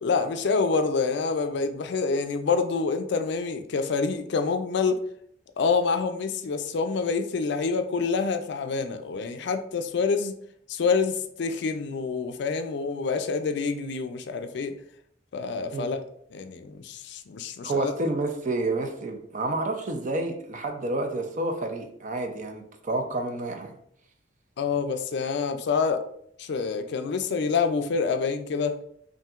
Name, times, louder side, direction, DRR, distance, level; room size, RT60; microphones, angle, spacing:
voice 1, 0.0-5.0 5.6-10.4 10.7-14.7 15.3-16.0 16.3-17.9 24.6-26.0 26.4-28.8, left 4 dB, 65° left, 8 dB, 0.4 m, -27 dB
voice 2, 17.6-23.8, right 2 dB, 45° right, 5 dB, 0.5 m, -29 dB
5.6 x 2.6 x 2.4 m, 0.68 s
head